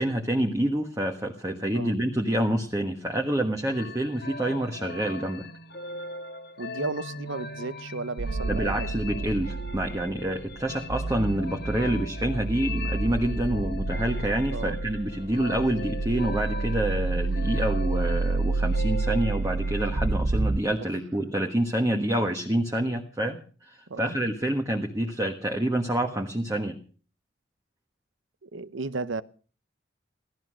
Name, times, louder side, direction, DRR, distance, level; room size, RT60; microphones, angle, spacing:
voice 1, 0.0-5.5 8.5-26.8, right 1 dB, 15° right, 1.4 m, -27 dB
sound 1, 3.7-20.1, left 2 dB, 50° left, 1.4 m, -40 dB
voice 2, 6.6-8.9 14.5-14.8 23.9-24.2 28.4-29.2, right 3 dB, 80° right, 0.8 m, -34 dB
sound 2, 8.2-20.6, right 3 dB, 45° right, 0.7 m, -29 dB
17.0 x 13.5 x 6.3 m
head